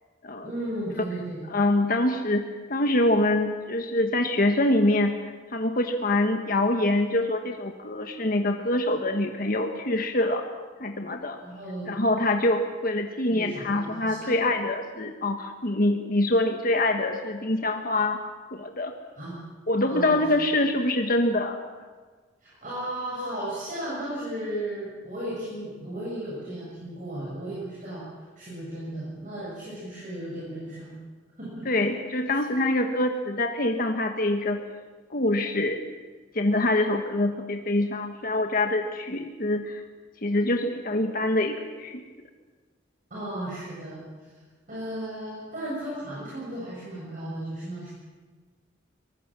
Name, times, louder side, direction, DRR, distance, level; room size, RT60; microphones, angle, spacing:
voice 1, 0.4-1.4 11.4-12.0 13.3-14.4 19.2-19.4 19.8-20.2 20.4-20.5 22.4-31.0 31.4-31.7 43.1-44.3 44.7-47.9, right 1 dB, 45° right, -7 dB, 7.7 m, -35 dB
voice 2, 1.5-2.4 2.7-5.2 5.5-10.4 10.8-11.4 11.9-18.2 18.5-18.9 19.7-21.6 31.6-34.6 35.1-35.8 36.3-39.8 40.2-42.0, left 1 dB, 50° left, 4 dB, 1.4 m, -25 dB
24.0 x 20.0 x 7.5 m, 1.4 s
head